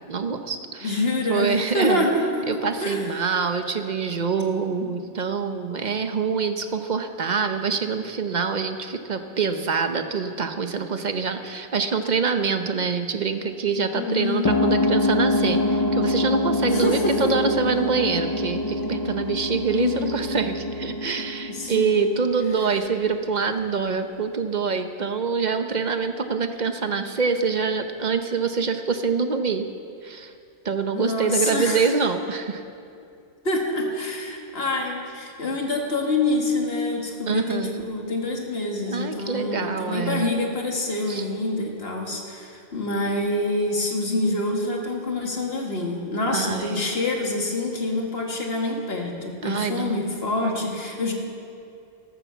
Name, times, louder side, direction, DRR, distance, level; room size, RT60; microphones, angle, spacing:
voice 1, 0.1-1.0 1.3-2.1 2.5-29.7 30.0-30.3 30.6-32.6 37.3-37.8 38.9-40.3 41.1-41.3 46.3-46.9 49.4-50.1, right 5 dB, 40° right, 8 dB, 0.8 m, -25 dB
voice 2, 0.8-3.1 13.9-14.5 16.6-17.3 19.7-20.1 21.5-22.2 30.9-31.9 33.4-51.1, left 2 dB, 55° left, 1 dB, 2.1 m, -26 dB
sound 1, 14.4-22.6, left 2 dB, 30° left, 0.4 m, -25 dB
13.5 x 12.0 x 7.1 m, 2.5 s
omnidirectional pair, 1.2 m